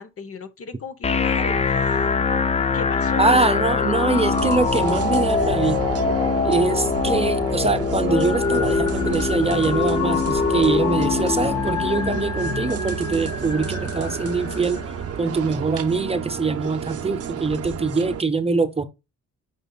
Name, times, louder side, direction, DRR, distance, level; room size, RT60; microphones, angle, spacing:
voice 1, 0.0-2.1 2.4-2.5 2.7-4.4, left 4 dB, 50° left, 1.0 m, -36 dB
sound 1, 1.0-15.0, left 5 dB, 20° left, 0.5 m, -24 dB
voice 2, 3.2-5.8 6.5-14.8 15.2-18.8, right 3 dB, 20° right, 0.8 m, -23 dB
sound 2, 4.3-18.2, right 10 dB, 50° right, 0.7 m, -31 dB
sound 3, 8.1-15.3, left 7 dB, 70° left, 1.4 m, -31 dB
9.1 x 5.4 x 2.4 m
cardioid pair, 90°, 30 cm